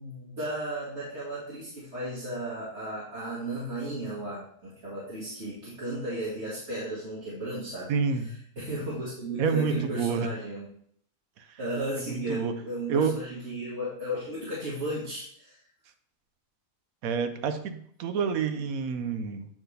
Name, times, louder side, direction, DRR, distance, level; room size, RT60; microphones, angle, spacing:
voice 1, 0.0-7.9 8.6-10.7 11.6-15.6, right 1 dB, 50° right, -10 dB, 2.3 m, -34 dB
voice 2, 7.9-8.3 9.4-10.3 12.0-12.5 12.9-13.2 17.0-19.5, right 6 dB, 85° right, 9 dB, 1.1 m, -28 dB
8.4 x 4.5 x 3.3 m, 0.64 s
omnidirectional pair, 1.4 m